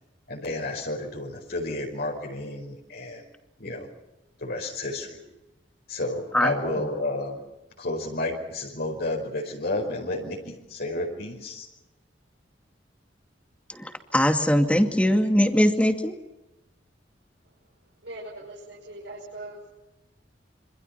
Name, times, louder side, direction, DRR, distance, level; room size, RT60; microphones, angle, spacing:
voice 1, 0.3-3.2 3.6-3.9 4.4-5.2 5.9-7.4 7.8-11.7, left 2 dB, 60° left, 1 dB, 5.0 m, -31 dB
voice 2, 13.7-16.1, equal, 5° left, 5 dB, 2.4 m, -21 dB
voice 3, 18.0-19.7, right 1 dB, 75° right, -3 dB, 5.9 m, -40 dB
27.0 x 26.0 x 5.8 m, 0.96 s
head